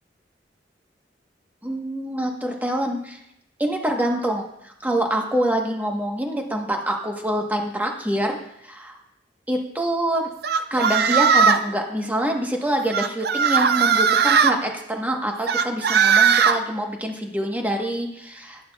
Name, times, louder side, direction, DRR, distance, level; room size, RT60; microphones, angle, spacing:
voice 1, 1.6-3.2 3.6-8.4 8.6-9.0 9.5-10.3 10.7-18.6, right 1 dB, 10° right, 1 dB, 1.1 m, -25 dB
sound 1, 10.4-11.7 12.9-14.5 15.5-16.6, right 6 dB, 60° right, 0.5 m, -18 dB
11.0 x 11.0 x 2.3 m, 0.79 s
head